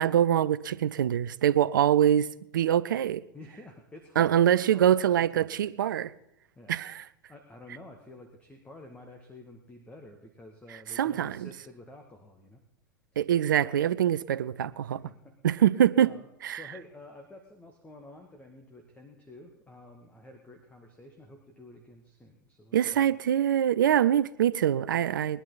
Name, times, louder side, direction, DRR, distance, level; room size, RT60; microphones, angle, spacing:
voice 1, 0.0-2.3 2.5-3.2 4.2-6.1 6.7-7.0 11.0-11.5 13.2-15.0 15.4-16.1 16.4-16.6 22.7-25.4, right 10 dB, 70° right, 0.6 m, -24 dB
voice 2, 3.3-5.6 6.6-6.8 7.3-12.6 15.0-15.4 16.0-16.3 16.6-23.0, left 2 dB, 10° left, 2.0 m, -50 dB
20.5 x 11.0 x 4.0 m
hypercardioid pair, 95°, 11 cm